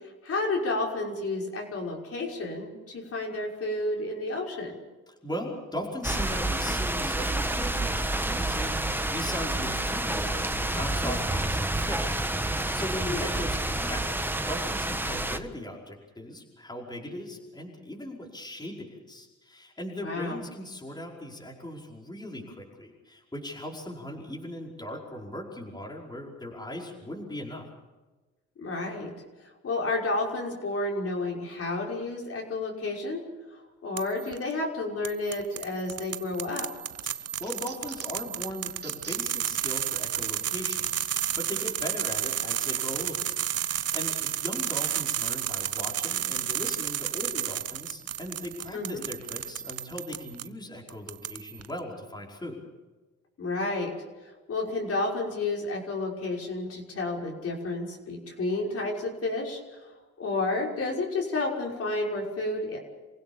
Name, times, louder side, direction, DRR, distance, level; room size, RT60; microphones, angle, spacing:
voice 1, 0.2-4.8 13.1-13.3 20.0-20.4 28.6-29.1 29.6-33.2 33.8-36.7 48.7-49.0 53.4-53.9 54.5-59.6 60.2-62.8, left 2 dB, 50° left, -2 dB, 5.9 m, -31 dB
voice 2, 5.1-14.2 14.5-27.7 37.4-43.3 43.7-52.6, left 1 dB, 15° left, -2 dB, 5.2 m, -39 dB
sound 1, 6.0-15.4, right 1 dB, 5° right, 1.5 m, -29 dB
sound 2, 34.0-34.4 35.0-50.5 50.9-51.7, right 10 dB, 55° right, 0.9 m, -32 dB
sound 3, 36.1-36.6 37.0-38.2 38.7-39.2 39.7-39.8 40.7-40.8 41.6-41.7, right 5 dB, 35° right, 3.1 m, -47 dB
27.5 x 16.5 x 7.3 m, 1.2 s
cardioid pair, 90°, 30 cm